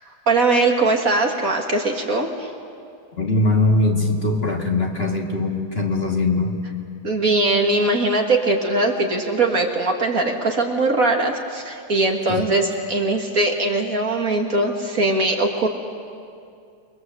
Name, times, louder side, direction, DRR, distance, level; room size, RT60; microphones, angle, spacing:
voice 1, 0.3-2.5 7.0-15.7, right 2 dB, 45° right, 2 dB, 2.2 m, -20 dB
voice 2, 3.2-6.6 12.3-12.5, left 2 dB, 30° left, 1 dB, 2.1 m, -21 dB
28.0 x 22.0 x 7.7 m, 2.4 s
omnidirectional pair, 2.0 m